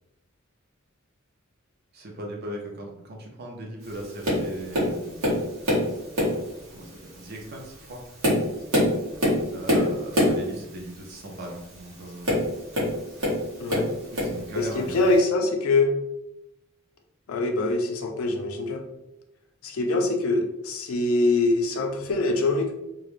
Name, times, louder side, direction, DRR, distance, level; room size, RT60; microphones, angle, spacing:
voice 1, 1.9-5.2 6.7-8.0 9.5-12.4 14.1-15.0, right 1 dB, 50° right, 0 dB, 0.5 m, -38 dB
Tap, 4.2-4.5 4.7-5.9 6.2-6.5 7.2-7.3 7.9-10.4 12.2-13.4 13.7-14.4 15.2-15.3, left 1 dB, 85° right, 0.9 m, -23 dB
voice 2, 13.6-13.9 14.6-15.9 17.3-18.8 19.6-22.7, left 2 dB, 75° left, 3 dB, 0.4 m, -24 dB
2.3 x 2.0 x 3.0 m, 0.89 s
head